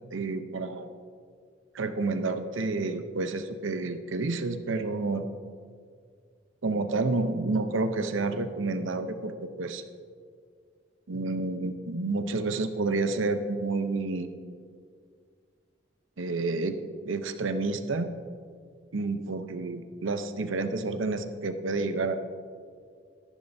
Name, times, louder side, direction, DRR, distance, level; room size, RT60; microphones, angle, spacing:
voice 1, 0.1-0.9 1.7-5.3 6.6-9.8 11.1-14.3 16.2-16.8 17.0-18.1 18.9-22.1, right 3 dB, 80° right, 8 dB, 0.7 m, -29 dB
14.0 x 11.0 x 2.7 m, 2.1 s
head